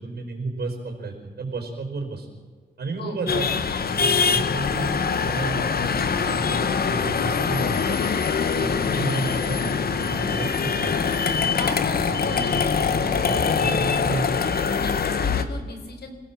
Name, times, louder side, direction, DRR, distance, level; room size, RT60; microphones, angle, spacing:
voice 1, 0.0-2.3 2.8-3.6 3.9-8.1 8.5-11.0 11.9-14.3, right 3 dB, 80° right, 3 dB, 5.0 m, -32 dB
sound 1, 3.3-15.4, left 6 dB, 70° left, 1.5 m, -23 dB
voice 2, 11.5-13.3 14.8-16.2, left 3 dB, 85° left, 6 dB, 4.4 m, -36 dB
27.5 x 17.0 x 7.4 m, 1.5 s
wide cardioid pair, 130°, 16 cm